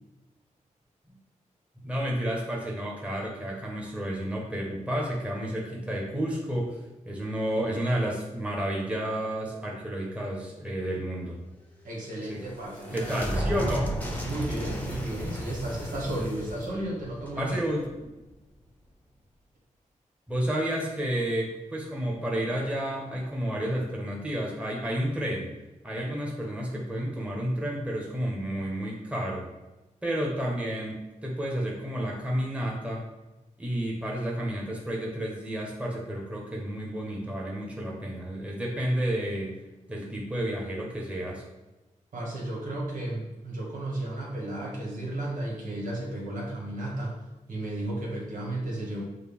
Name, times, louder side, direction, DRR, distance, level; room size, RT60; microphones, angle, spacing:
voice 1, 1.8-6.8 7.0-11.4 12.3-12.4 12.9-13.9 17.4-17.9 20.3-25.5 25.8-29.5 30.0-33.0 33.6-39.5 39.9-41.4, right 1 dB, 10° right, -3 dB, 1.0 m, -31 dB
sound 1, 11.8-18.3, equal, 10° left, 0.8 m, -34 dB
voice 2, 11.8-13.1 14.2-17.6 26.1-26.2 42.1-47.2 47.5-49.0, right 1 dB, 85° right, -4 dB, 1.4 m, -33 dB
6.5 x 2.3 x 3.5 m, 1.1 s
wide cardioid pair, 95°, 13 cm